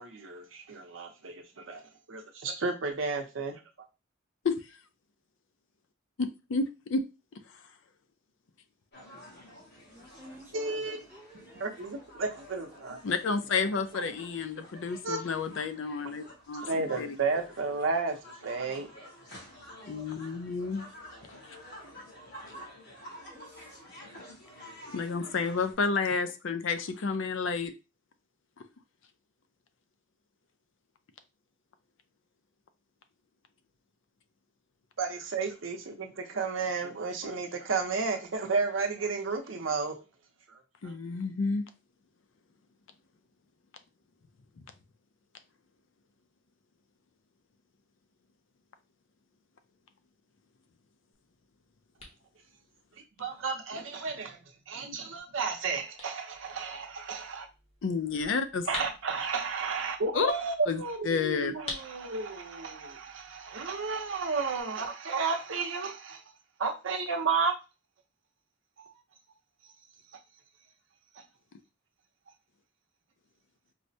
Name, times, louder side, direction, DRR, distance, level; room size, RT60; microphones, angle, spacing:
voice 1, 0.0-1.8 2.1-3.6 10.5-11.0 11.6-13.0 13.9-14.1 15.0-15.2 16.6-19.1 35.0-40.0 40.5-40.9 53.2-57.5 58.7-66.2 66.6-67.5 68.8-68.9, right 4 dB, 80° right, 0.7 m, -32 dB
voice 2, 6.2-7.0 13.0-16.7 17.0-17.1 19.9-20.8 24.9-27.7 40.8-41.6 57.8-58.7 60.1-60.3 60.7-61.5, left 4 dB, 75° left, 0.4 m, -30 dB
sound 1, 8.9-25.7, equal, 55° left, 1.8 m, -50 dB
voice 3, 9.9-12.2 21.9-23.0 23.3-23.8 24.8-25.0, equal, 10° right, 0.6 m, -55 dB
sound 2, 51.1-64.6, left 2 dB, 30° left, 0.9 m, -49 dB
4.7 x 2.1 x 2.7 m
head